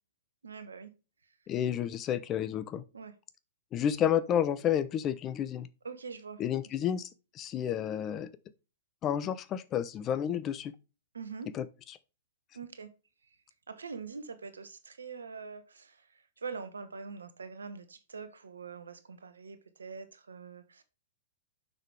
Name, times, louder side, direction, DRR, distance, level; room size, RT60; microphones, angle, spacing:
voice 1, 0.4-0.9 2.9-3.1 5.8-6.4 11.1-11.5 12.5-12.9 13.7-20.8, right 5 dB, 90° right, 1.3 m, -44 dB
voice 2, 1.5-2.8 3.7-5.7 6.4-7.1 7.3-8.3 9.0-10.7 11.5-11.6, left 9 dB, 30° left, 0.9 m, -30 dB
7.0 x 6.0 x 3.5 m
hypercardioid pair, 120°, 0 cm